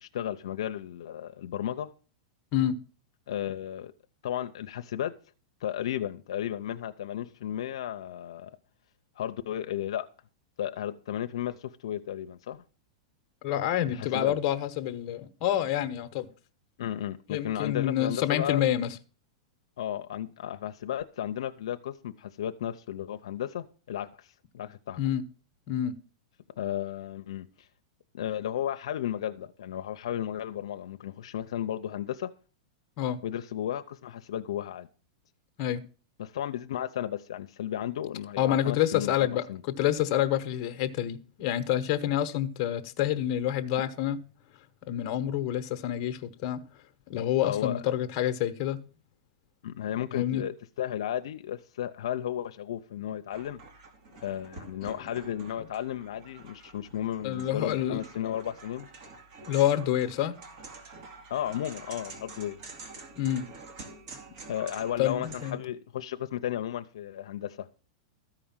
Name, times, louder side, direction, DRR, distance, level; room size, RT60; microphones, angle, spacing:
voice 1, 0.0-1.9 3.3-3.9 4.2-5.1 5.6-8.5 9.2-10.1 10.6-12.6 13.9-14.4 16.8-18.7 19.8-24.3 24.5-25.0 26.6-27.7 28.1-32.3 33.2-34.9 36.2-39.6 47.4-47.8 49.6-53.6 54.2-58.9 61.3-62.6 64.5-67.7, left 11 dB, 80° left, 0.6 m, -34 dB
voice 2, 13.4-16.3 17.3-18.9 25.0-25.2 25.7-26.0 33.0-33.2 35.6-35.8 38.4-44.2 44.9-46.6 47.1-48.8 50.1-50.4 57.2-58.0 59.5-60.3 63.2-63.5 65.0-65.6, left 11 dB, 40° left, 1.1 m, -28 dB
sound 1, 53.3-65.5, right 3 dB, 50° right, 2.6 m, -48 dB
13.5 x 5.0 x 7.2 m
supercardioid pair, 150°, 3 cm